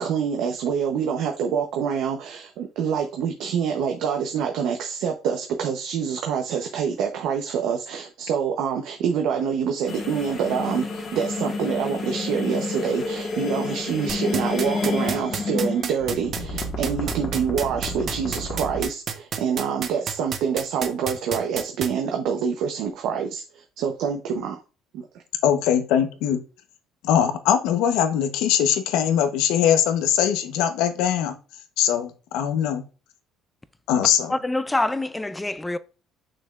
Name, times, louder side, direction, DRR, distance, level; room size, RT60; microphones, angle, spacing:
voice 1, 0.0-24.6, right 7 dB, 70° right, 0.8 m, -26 dB
sound 1, 9.9-18.8, left 3 dB, 40° left, 1.6 m, -30 dB
sound 2, 14.1-21.9, right 7 dB, 40° right, 0.9 m, -28 dB
voice 2, 25.4-26.4 27.0-31.3 31.8-32.8 33.9-34.3, left 9 dB, 80° left, 0.9 m, -21 dB
voice 3, 34.3-35.8, left 2 dB, 10° left, 0.4 m, -25 dB
6.5 x 6.1 x 2.4 m
cardioid pair, 125°, 0 cm